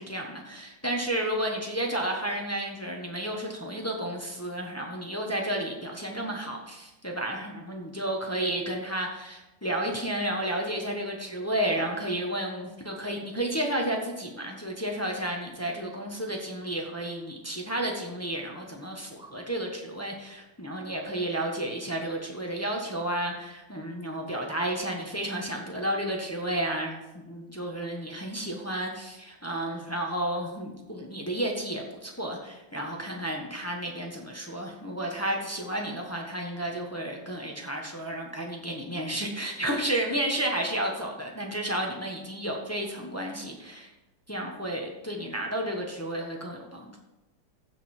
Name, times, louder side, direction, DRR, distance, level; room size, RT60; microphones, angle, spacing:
voice 1, 0.0-43.9 44.3-46.9, right 1 dB, 10° left, 0 dB, 0.8 m, -32 dB
15.0 x 5.3 x 4.4 m, 1.0 s
omnidirectional pair, 2.3 m